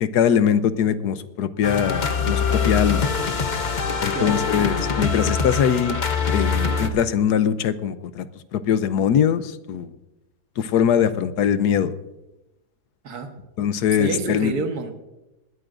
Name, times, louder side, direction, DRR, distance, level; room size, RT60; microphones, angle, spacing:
voice 1, 0.0-3.1 4.0-6.0 6.3-8.3 8.5-9.9 10.6-11.9 13.6-14.5, left 8 dB, 85° left, 13 dB, 1.3 m, -21 dB
sound 1, 1.6-6.9, left 5 dB, 40° left, 0.7 m, -23 dB
voice 2, 4.1-4.4 13.0-13.3 13.7-15.0, right 4 dB, 75° right, 5 dB, 1.9 m, -29 dB
19.5 x 13.5 x 2.6 m, 0.98 s
omnidirectional pair, 1.7 m